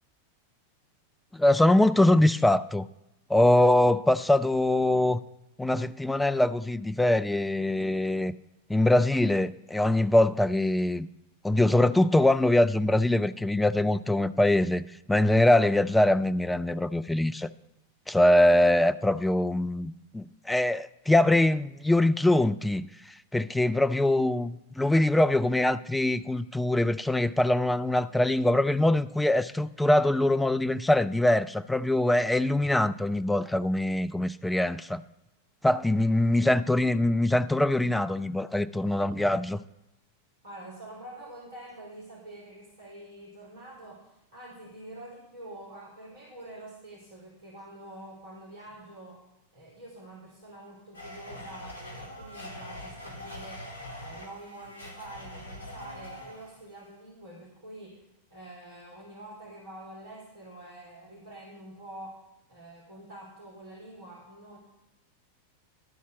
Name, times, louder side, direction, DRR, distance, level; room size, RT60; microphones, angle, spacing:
voice 1, 1.3-2.9 3.3-5.2 5.6-8.3 8.7-11.1 11.4-17.5 18.1-35.0 35.6-39.6, left 1 dB, 5° left, 0.4 m, -23 dB
voice 2, 40.4-49.2 49.5-53.7 54.0-58.0 58.3-62.2 62.5-64.6, right 1 dB, 65° right, 3.3 m, -46 dB
Domestic sounds home sounds, 50.9-56.6, left 1 dB, 90° right, 3.4 m, -43 dB
12.5 x 4.2 x 7.1 m
figure-of-eight pair, 90°, 0 cm